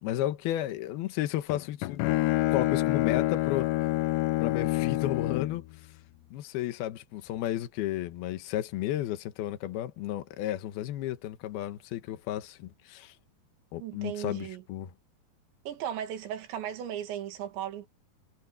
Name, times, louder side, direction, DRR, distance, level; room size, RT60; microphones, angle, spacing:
voice 1, 0.0-2.1 2.5-3.7 4.4-5.6 6.3-13.1 13.7-14.9, left 13 dB, 70° left, 3.0 m, -33 dB
Bowed string instrument, 1.5-5.7, left 18 dB, 85° left, 2.8 m, -27 dB
voice 2, 13.8-14.6 15.7-17.9, right 10 dB, 85° right, 4.4 m, -36 dB
omnidirectional pair, 5.0 m